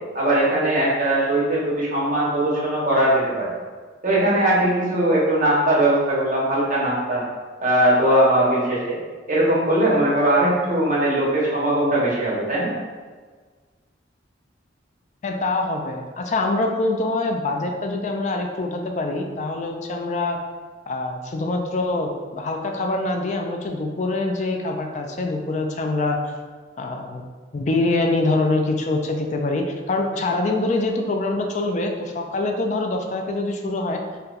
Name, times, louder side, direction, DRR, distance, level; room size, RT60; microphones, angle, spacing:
voice 1, 0.1-3.5 4.0-7.2 7.6-9.0 9.3-12.7, right 1 dB, 40° right, -6 dB, 0.9 m, -20 dB
voice 2, 15.2-20.4 20.9-26.2 26.8-27.2 27.5-34.0, left 2 dB, 40° left, 3 dB, 0.3 m, -24 dB
2.8 x 2.2 x 3.7 m, 1.5 s
head